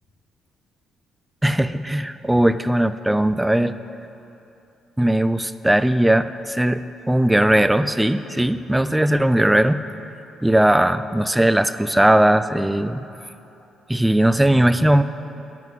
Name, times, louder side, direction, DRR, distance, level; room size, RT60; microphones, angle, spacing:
voice 1, 1.4-3.7 5.0-9.8 10.4-13.0 13.9-15.0, right 1 dB, 10° right, 12 dB, 0.4 m, -18 dB
10.5 x 8.1 x 7.6 m, 2.9 s
cardioid pair, 90°, 0 cm